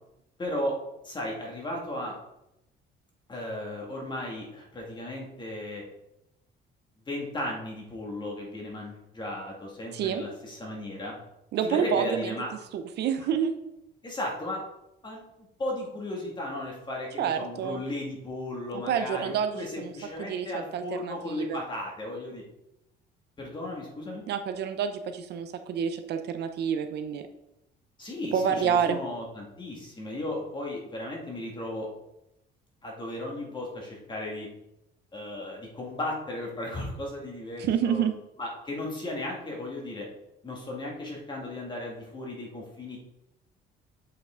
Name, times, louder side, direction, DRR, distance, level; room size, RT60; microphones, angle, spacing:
voice 1, 0.4-0.7 1.0-2.1 3.3-5.8 7.1-11.1 11.6-12.5 14.0-14.6 15.0-22.4 23.4-24.2 28.0-31.9 32.8-34.5 35.1-38.0 38.4-40.1 40.4-43.0, left 1 dB, 25° left, -1 dB, 2.1 m, -35 dB
voice 2, 11.5-12.3 12.7-13.5 17.2-17.8 18.7-20.5 20.7-21.6 24.3-27.2 28.3-29.0 37.6-38.1, right 7 dB, 60° right, 7 dB, 0.7 m, -28 dB
7.8 x 5.8 x 3.8 m, 0.86 s
cardioid pair, 140°, 19 cm